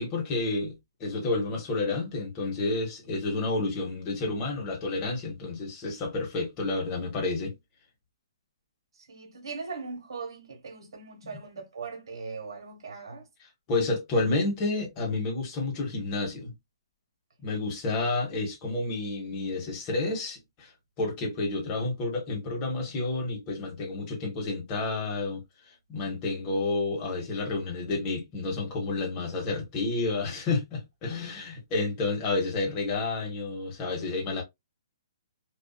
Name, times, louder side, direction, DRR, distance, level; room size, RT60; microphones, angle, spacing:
voice 1, 0.0-7.5 13.7-16.5 17.4-20.7 21.0-25.4 25.9-34.4, left 3 dB, 25° left, 0.9 m, -30 dB
voice 2, 9.0-13.3 17.4-17.7, right 4 dB, 75° right, 1.2 m, -40 dB
2.5 x 2.3 x 2.2 m
hypercardioid pair, 160°, 3 cm